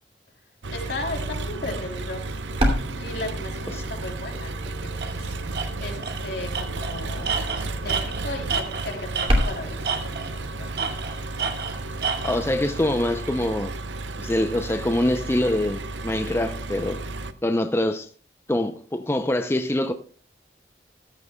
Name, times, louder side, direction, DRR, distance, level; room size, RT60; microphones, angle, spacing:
Engine, 0.6-17.3, right 2 dB, 85° right, 0.7 m, -33 dB
voice 1, 0.7-2.3 3.0-10.7, left 2 dB, 70° left, 3.3 m, -36 dB
sound 1, 2.3-12.5, equal, 35° right, 2.6 m, -32 dB
Tools, 5.0-5.1 5.5-5.7 6.0-6.2 6.5-9.6 9.8-10.4 10.8-12.4, right 6 dB, 60° right, 1.4 m, -29 dB
voice 2, 12.2-13.7 14.2-17.0 17.4-18.1 18.5-19.9, left 1 dB, 15° left, 0.5 m, -24 dB
15.0 x 13.0 x 2.2 m
head